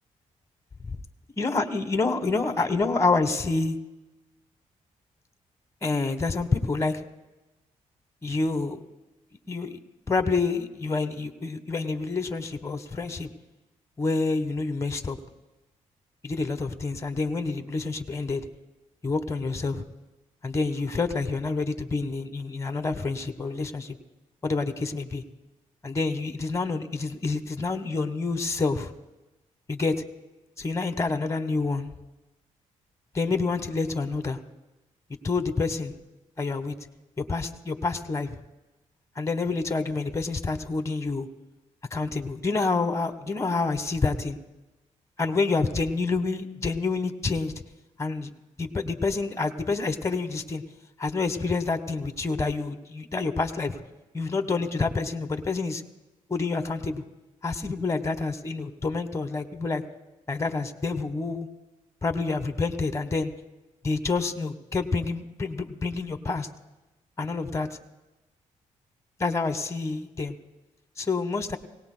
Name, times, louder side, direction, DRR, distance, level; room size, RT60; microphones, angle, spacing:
voice 1, 1.4-3.8 5.8-7.0 8.2-8.8 9.5-9.8 10.1-13.3 14.0-15.2 16.2-18.4 19.0-19.8 20.4-24.0 24.4-25.2 25.8-28.9 29.7-30.0 30.6-31.9 33.1-34.4 35.2-35.9 36.4-36.7 37.2-38.4 39.2-41.3 41.9-44.4 45.2-47.5 48.0-48.3 48.6-50.6 51.0-53.8 54.1-55.8 56.3-57.0 57.4-59.8 60.3-61.5 62.0-63.3 63.8-66.5 67.2-67.7 69.2-70.3 71.0-71.6, left 3 dB, 25° left, 6 dB, 1.4 m, -28 dB
25.0 x 18.5 x 2.2 m, 1.0 s
cardioid pair, 80°, 13 cm